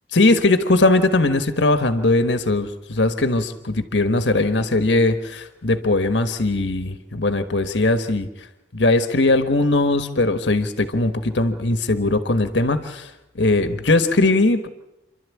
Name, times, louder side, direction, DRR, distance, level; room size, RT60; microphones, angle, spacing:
voice 1, 0.1-8.3 8.7-13.1 13.3-14.7, left 2 dB, 85° left, 9 dB, 1.4 m, -19 dB
28.5 x 12.0 x 8.4 m, 0.94 s
head